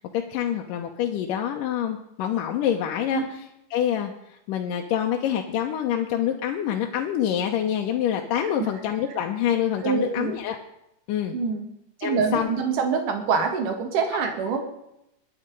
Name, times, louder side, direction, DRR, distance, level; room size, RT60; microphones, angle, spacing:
voice 1, 0.0-3.2 3.7-10.6 11.1-11.4 12.0-12.5 14.1-14.2, left 10 dB, 90° left, 2 dB, 2.6 m, -26 dB
voice 2, 9.8-10.4 11.3-11.7 12.0-14.6, right 5 dB, 75° right, 5 dB, 3.4 m, -25 dB
20.5 x 8.7 x 5.4 m, 0.83 s
omnidirectional pair, 3.7 m